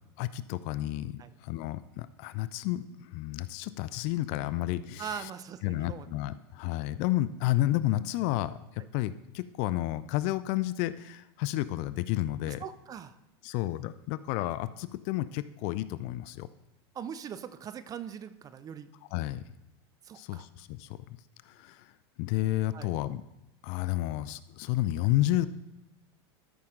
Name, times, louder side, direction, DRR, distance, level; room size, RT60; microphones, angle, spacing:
voice 1, 0.2-5.3 5.6-12.6 13.4-16.5 19.1-19.4 20.1-21.0 21.5-21.9 22.2-23.2 23.6-25.5, left 15 dB, 50° left, 15 dB, 0.4 m, -31 dB
voice 2, 5.0-6.1 12.5-13.2 16.9-18.9 20.0-20.5 22.7-22.9, right 8 dB, 25° right, 13 dB, 0.5 m, -41 dB
13.0 x 5.8 x 3.8 m, 0.92 s
hypercardioid pair, 120°, 14 cm